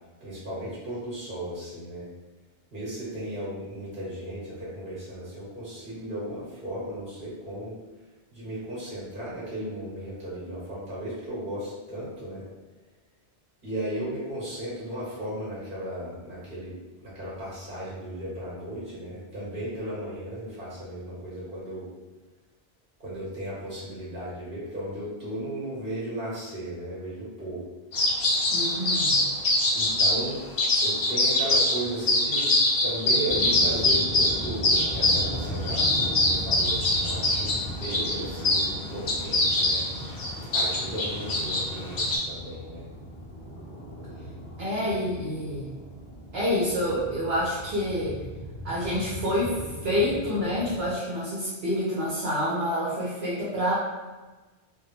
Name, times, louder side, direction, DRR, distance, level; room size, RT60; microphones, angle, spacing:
voice 1, 0.2-2.1 2.7-7.8 8.3-12.4 13.6-16.7 17.0-21.9 23.0-27.7 29.7-30.4 30.8-39.9 40.5-42.9, right 1 dB, 50° right, -8 dB, 1.6 m, -35 dB
sound 1, 27.9-30.2 30.6-31.8 32.1-38.7 39.1-42.2, left 2 dB, 70° left, 0.9 m, -23 dB
voice 2, 28.5-29.2 44.6-45.7 46.3-48.2 48.6-53.7, left 1 dB, 65° right, -7 dB, 1.0 m, -27 dB
sound 2, 33.2-50.9, right 1 dB, 10° left, 0.6 m, -38 dB
3.5 x 2.0 x 2.8 m, 1.2 s
omnidirectional pair, 1.1 m